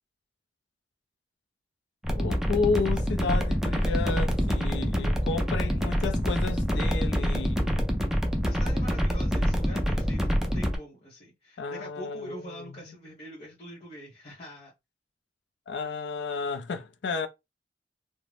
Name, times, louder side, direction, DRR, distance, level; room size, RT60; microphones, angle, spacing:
sound 1, 2.0-10.8, equal, 5° right, 0.4 m, -26 dB
voice 1, 2.1-7.8 11.6-12.7 15.7-17.3, left 4 dB, 85° left, 0.4 m, -32 dB
voice 2, 8.4-14.7, equal, 35° left, 0.8 m, -44 dB
2.5 x 2.0 x 3.2 m
head